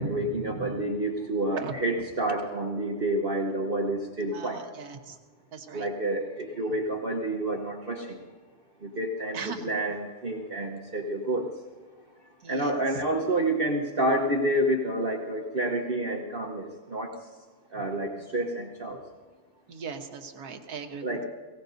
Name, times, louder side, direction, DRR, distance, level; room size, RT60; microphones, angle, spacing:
voice 1, 0.0-4.6 5.7-8.2 8.8-11.5 12.5-17.1 17.7-19.0 21.0-21.3, right 1 dB, 40° right, -1 dB, 1.2 m, -29 dB
voice 2, 4.3-5.1 5.5-5.8 9.3-9.7 12.4-12.7 19.7-21.1, right 4 dB, 75° right, 5 dB, 1.7 m, -38 dB
23.0 x 17.0 x 2.7 m, 1.5 s
omnidirectional pair, 1.6 m